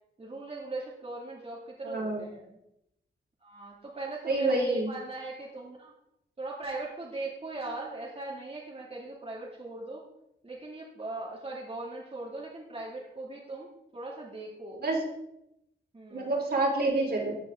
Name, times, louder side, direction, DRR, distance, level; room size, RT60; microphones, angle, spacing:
voice 1, 0.2-2.4 3.4-5.9 6.4-10.0 10.4-14.8 15.9-16.3, right 2 dB, 30° right, -4 dB, 2.5 m, -39 dB
voice 2, 1.8-2.3 4.3-4.9 14.8-15.0 16.1-17.3, right 2 dB, 55° right, -1 dB, 3.7 m, -27 dB
14.5 x 9.5 x 3.8 m, 0.84 s
wide cardioid pair, 105°, 20 cm